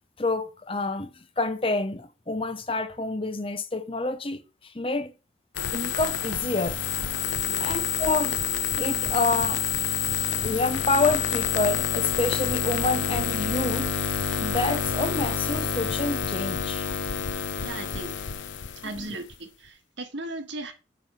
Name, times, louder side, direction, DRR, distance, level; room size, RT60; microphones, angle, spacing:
voice 1, 0.2-1.1 1.4-4.4 4.7-5.1 5.7-6.8 7.6-8.4 8.8-9.7 10.4-13.9 14.4-16.9 19.0-19.1, left 3 dB, 30° left, 0.8 m, -28 dB
sound 1, 5.6-19.4, left 8 dB, 85° left, 0.7 m, -28 dB
voice 2, 17.6-18.2 18.8-20.7, right 2 dB, 75° right, 1.6 m, -37 dB
9.1 x 3.4 x 5.8 m
head